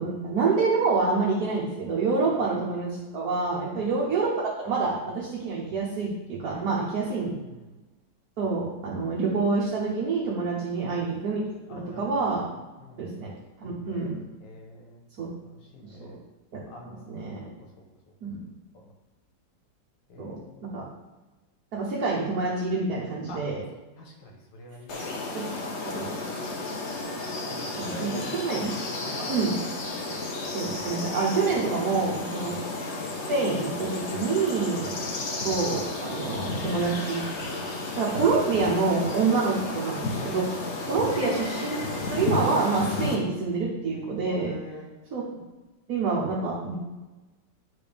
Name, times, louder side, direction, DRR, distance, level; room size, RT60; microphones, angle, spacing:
voice 1, 0.0-7.3 8.4-11.4 11.7-12.4 13.0-13.3 13.6-14.2 15.2-15.3 16.5-16.6 17.1-17.4 18.2-18.5 20.2-20.3 20.7-20.8 21.7-23.6 25.3-25.5 25.8-26.1 27.8-28.7 29.3-29.6 30.5-32.5 33.3-34.9 35.4-37.2 38.0-40.4 40.9-41.8 42.1-44.5 45.1-45.2 45.9-46.7, right 4 dB, 60° right, -5 dB, 1.5 m, -27 dB
voice 2, 2.1-2.5 3.4-3.9 6.5-7.7 10.5-10.9 11.7-13.2 13.6-14.1 14.4-15.0 15.4-16.2 16.7-17.3 17.6-17.7 18.7-18.9 20.1-20.9 23.3-23.5 24.0-25.3 25.9-26.2 27.5-29.3 31.6-31.8 32.2-32.6 34.1-35.3 39.2-39.5 40.6-41.3 44.3-45.0, left 2 dB, 75° left, 0 dB, 1.8 m, -47 dB
sound 1, 24.9-43.2, left 2 dB, 50° left, 1.0 m, -32 dB
10.5 x 3.9 x 3.4 m, 1.1 s
omnidirectional pair, 2.0 m